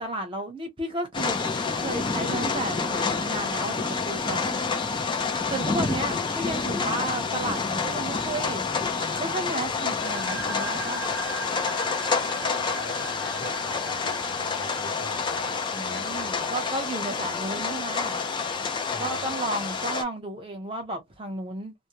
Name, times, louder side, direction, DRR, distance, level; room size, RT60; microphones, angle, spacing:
voice 1, 0.0-1.4 1.8-4.6 5.5-8.6 9.2-11.0 15.7-18.2 19.0-21.7, right 2 dB, 25° right, 0.8 m, -33 dB
sound 1, 1.1-20.0, left 4 dB, 20° left, 0.4 m, -28 dB
sound 2, 10.0-17.5, right 6 dB, 55° right, 0.6 m, -41 dB
voice 2, 12.6-15.5 15.8-16.5 17.2-17.4 18.9-19.3, left 2 dB, 65° left, 1.0 m, -41 dB
2.1 x 2.1 x 2.9 m
head